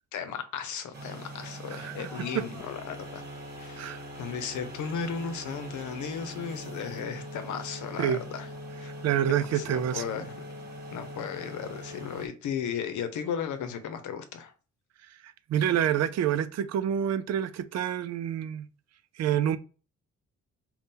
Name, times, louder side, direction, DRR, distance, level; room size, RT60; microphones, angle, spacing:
voice 1, 0.1-3.3 3.6-8.5 8.8-8.9 9.3-10.4 10.9-14.5, left 7 dB, 75° left, 0.8 m, -35 dB
sound 1, 0.9-12.3, equal, 35° right, 1.3 m, -42 dB
voice 2, 1.7-2.1 2.3-2.4 3.8-4.0 8.0-8.2 9.0-10.0 15.5-18.7 19.2-19.6, right 10 dB, 60° right, 0.5 m, -27 dB
3.6 x 2.4 x 4.1 m
cardioid pair, 90°, 30 cm